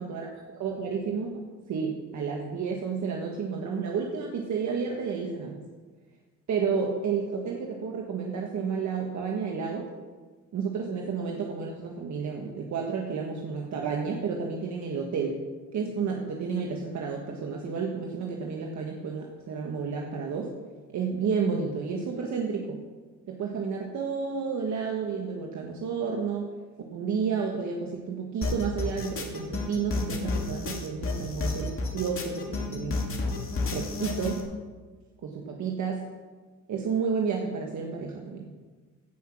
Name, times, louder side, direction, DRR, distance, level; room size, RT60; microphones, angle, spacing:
voice 1, 0.6-5.6 6.5-9.9 10.5-15.4 15.7-20.5 20.9-22.8 23.3-26.5 26.9-33.0 33.7-34.4 35.2-36.0 36.7-38.5, right 5 dB, 70° right, 0 dB, 1.5 m, -31 dB
sound 1, 28.4-34.4, left 3 dB, 45° left, 2.4 m, -31 dB
16.5 x 5.9 x 6.0 m, 1.4 s
cardioid pair, 90°, 30 cm